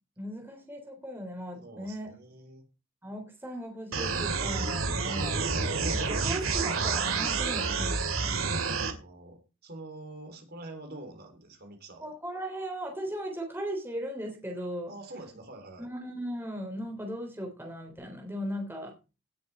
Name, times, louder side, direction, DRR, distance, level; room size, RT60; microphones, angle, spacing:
voice 1, 0.2-2.1 3.0-8.8 12.0-14.9 15.8-18.9, equal, 10° right, 1 dB, 3.4 m, -38 dB
voice 2, 1.6-2.6 9.0-12.1 14.9-15.9, right 2 dB, 45° right, 4 dB, 3.6 m, -46 dB
sound 1, 3.9-8.9, right 4 dB, 70° right, 2.4 m, -29 dB
18.0 x 7.3 x 4.4 m, 0.31 s
head